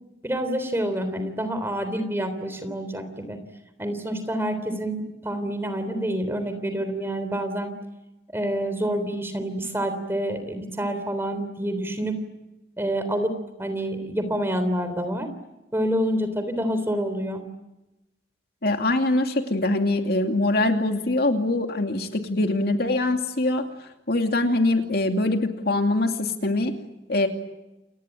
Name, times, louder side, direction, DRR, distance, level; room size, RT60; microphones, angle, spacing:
voice 1, 0.2-3.4 3.8-7.7 8.3-12.2 12.8-15.3 15.7-17.4, right 1 dB, 15° right, 9 dB, 3.4 m, -27 dB
voice 2, 18.6-23.7 24.1-26.7 27.1-27.3, left 2 dB, 55° left, 5 dB, 2.6 m, -23 dB
29.0 x 22.0 x 9.1 m, 0.99 s
head